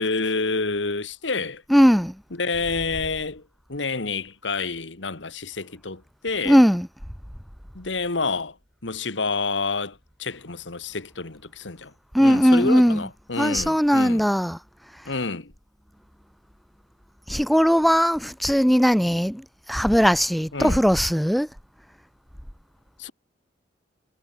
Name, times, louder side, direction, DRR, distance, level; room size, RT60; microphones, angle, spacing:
voice 1, 0.0-1.6 2.3-3.4 3.7-6.6 7.7-8.6 8.8-11.9 12.2-14.2 15.1-15.5 20.5-20.8 23.0-23.1, left 3 dB, 80° left, 1.9 m, -28 dB
voice 2, 1.7-2.1 6.5-6.9 12.1-13.0 13.4-14.6 17.3-19.4 19.7-21.5, equal, ahead, 0.3 m, -19 dB
head